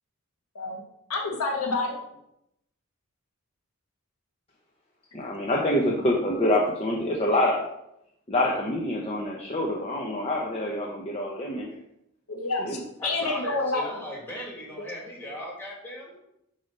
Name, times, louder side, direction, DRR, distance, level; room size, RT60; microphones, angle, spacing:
voice 1, 1.1-1.9 12.3-13.9 14.8-14.9, left 3 dB, 85° left, 1 dB, 1.3 m, -28 dB
voice 2, 5.1-7.6 8.3-11.7 12.6-12.8, left 1 dB, 25° left, -2 dB, 0.7 m, -26 dB
voice 3, 13.0-16.2, equal, 10° left, -4 dB, 1.8 m, -38 dB
7.7 x 3.3 x 5.3 m, 0.80 s
head